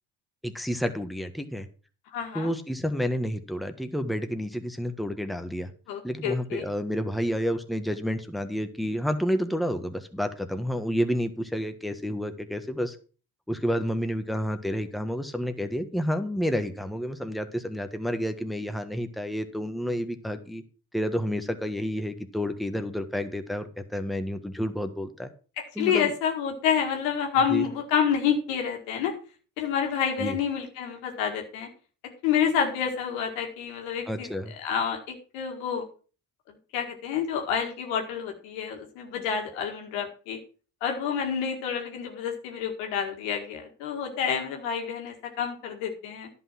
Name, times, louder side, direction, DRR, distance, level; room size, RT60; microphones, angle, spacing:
voice 1, 0.4-1.7 2.3-5.7 6.0-13.0 13.5-20.6 20.9-25.3 25.8-26.1 27.5-27.6 30.2-30.4 34.1-34.5, equal, ahead, 7 dB, 1.4 m, -30 dB
voice 2, 2.1-2.5 5.9-6.6 25.6-29.1 29.6-31.7 32.2-34.3 34.6-35.8 36.5-40.4 40.8-46.3, left 7 dB, 90° left, 3 dB, 2.0 m, -28 dB
11.0 x 6.1 x 5.8 m, 0.38 s
supercardioid pair, 55°, 44 cm